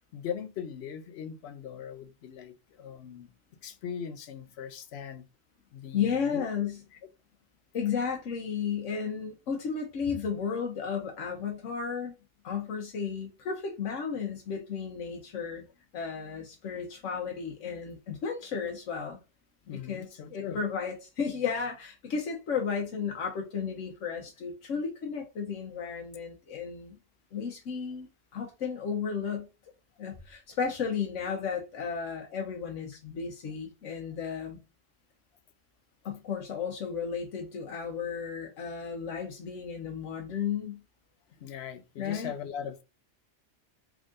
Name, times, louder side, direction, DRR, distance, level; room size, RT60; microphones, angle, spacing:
voice 1, 0.1-3.3 3.6-5.2 5.7-6.7 19.7-20.6 41.4-42.8, left 8 dB, 65° left, 0.8 m, -40 dB
voice 2, 5.9-6.8 7.7-12.1 12.4-15.6 15.9-19.2 19.7-27.0 27.3-29.5 30.0-34.6 36.0-40.8 42.0-42.3, left 6 dB, 90° left, 1.1 m, -33 dB
3.6 x 3.6 x 2.5 m
omnidirectional pair, 1.3 m